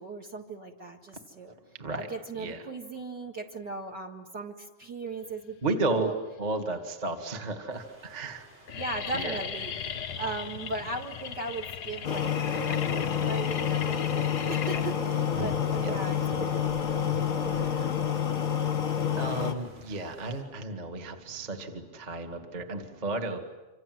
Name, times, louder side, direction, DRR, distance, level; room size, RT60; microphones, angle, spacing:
voice 1, 0.0-1.5 1.9-6.1 8.7-16.6, right 3 dB, 40° right, 3 dB, 2.0 m, -38 dB
voice 2, 5.6-6.1 6.4-8.5 9.1-9.4 15.4-15.5 15.8-15.9 17.6-18.0 19.2-23.4, right 2 dB, 15° right, 5 dB, 1.5 m, -33 dB
sound 1, 6.1-6.7 7.3-7.4 7.7-8.1 8.3-17.3, left 8 dB, 75° left, 0.9 m, -38 dB
sound 2, 7.7-20.4, equal, 75° right, 8.6 m, -50 dB
sound 3, 12.0-19.5, left 8 dB, 45° left, 1.5 m, -28 dB
26.5 x 26.5 x 7.9 m, 1.2 s
omnidirectional pair, 3.5 m